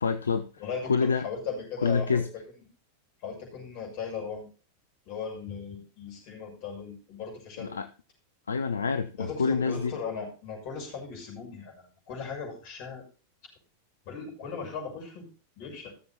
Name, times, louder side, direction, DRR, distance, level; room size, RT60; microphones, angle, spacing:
voice 1, 0.0-0.5 0.9-1.3 1.8-2.3 7.6-7.9 8.5-9.9, left 5 dB, 70° left, 10 dB, 0.6 m, -27 dB
voice 2, 0.6-2.3 3.2-4.5 5.0-7.7 9.2-13.0 14.0-15.3 15.6-15.9, left 5 dB, 45° left, -1 dB, 6.2 m, -37 dB
15.0 x 7.1 x 4.3 m, 0.37 s
figure-of-eight pair, 90°, 0 cm